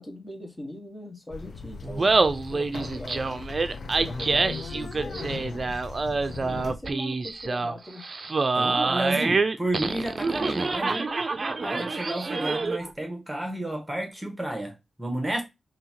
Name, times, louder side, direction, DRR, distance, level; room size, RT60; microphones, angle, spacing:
voice 1, 0.0-2.2 2.5-3.3 4.0-5.6 6.4-8.1, left 1 dB, 20° left, 1.5 m, -40 dB
sound 1, 1.3-6.8, left 4 dB, 60° left, 0.6 m, -38 dB
Laughter, 1.8-12.9, right 3 dB, 45° right, 0.5 m, -26 dB
voice 2, 8.5-11.1 11.6-15.4, right 1 dB, 15° right, 1.3 m, -31 dB
5.4 x 2.9 x 2.8 m
cardioid pair, 75°, 0 cm